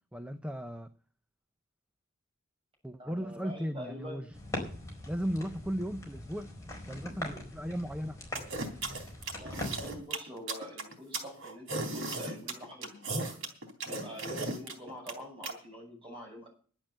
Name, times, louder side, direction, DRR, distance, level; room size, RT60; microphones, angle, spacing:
voice 1, 0.1-0.9 2.8-4.3 5.1-6.5 6.9-8.2, equal, 5° right, 8 dB, 0.6 m, -36 dB
voice 2, 3.0-4.3 9.4-13.3 13.8-16.5, equal, 25° right, -1 dB, 7.5 m, -46 dB
sound 1, 4.3-10.0, left 1 dB, 15° left, 4.4 m, -41 dB
sound 2, 8.3-15.5, right 2 dB, 70° right, 3.4 m, -36 dB
11.5 x 8.9 x 7.9 m, 0.42 s
head